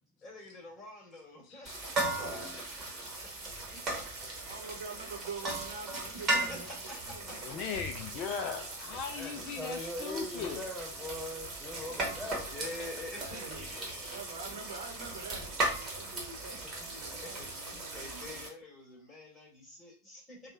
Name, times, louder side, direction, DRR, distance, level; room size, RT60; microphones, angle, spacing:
voice 1, 0.2-2.9 3.2-3.9 6.1-7.6 9.4-9.6 11.8-14.3 16.6-20.5, left 2 dB, 20° left, 2.2 m, -48 dB
sound 1, 1.7-18.5, right 2 dB, 25° right, 1.4 m, -37 dB
voice 2, 4.2-7.9 13.2-18.4, right 4 dB, 60° right, 0.9 m, -46 dB
voice 3, 7.4-10.6, left 5 dB, 40° left, 0.4 m, -38 dB
voice 4, 9.1-12.5, left 1 dB, ahead, 0.8 m, -41 dB
5.3 x 2.3 x 2.6 m
figure-of-eight pair, 90°, 0 cm